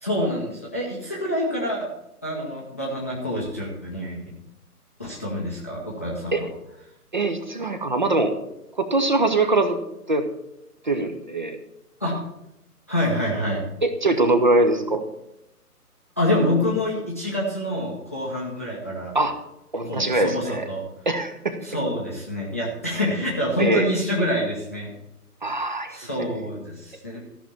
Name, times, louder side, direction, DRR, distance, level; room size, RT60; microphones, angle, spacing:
voice 1, 0.0-1.9 2.2-4.2 5.0-6.5 12.0-12.2 12.9-13.6 16.2-19.1 19.8-20.8 21.6-24.9 25.9-27.2, left 1 dB, 10° left, -5 dB, 0.7 m, -26 dB
voice 2, 7.1-8.3 8.8-9.8 10.1-10.3 10.8-11.6 13.8-15.0 19.1-19.3 19.7-20.7 21.1-21.6 23.6-23.9 25.4-26.0, right 2 dB, 30° right, 8 dB, 0.8 m, -22 dB
14.0 x 6.0 x 6.9 m, 0.86 s
figure-of-eight pair, 145°, 47 cm